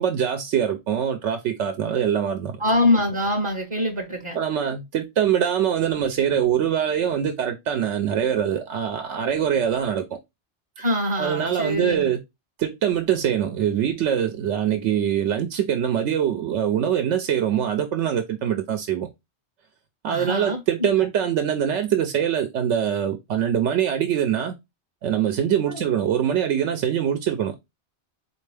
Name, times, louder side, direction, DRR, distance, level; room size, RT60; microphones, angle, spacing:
voice 1, 0.0-2.6 4.3-10.1 11.2-12.2 12.6-19.1 20.0-24.5 25.0-27.6, right 9 dB, 90° right, 0.9 m, -23 dB
voice 2, 2.6-4.4 10.8-12.1 20.1-20.9 25.7-25.8, left 1 dB, 35° right, 0.6 m, -24 dB
4.4 x 2.5 x 3.2 m
omnidirectional pair, 1.2 m